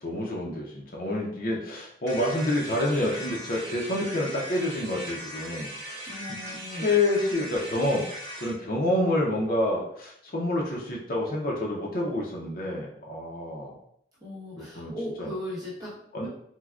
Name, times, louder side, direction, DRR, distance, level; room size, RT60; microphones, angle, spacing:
voice 1, 0.0-6.1 6.5-8.1 8.4-13.8 14.6-14.9 15.2-15.3 16.1-16.3, left 1 dB, 50° left, -3 dB, 0.5 m, -28 dB
sound 1, 2.1-8.6, equal, 80° right, 1.1 m, -39 dB
voice 2, 6.0-6.8 14.2-15.9 16.2-16.3, left 1 dB, 20° right, -8 dB, 0.9 m, -37 dB
4.5 x 2.1 x 2.3 m, 0.73 s
head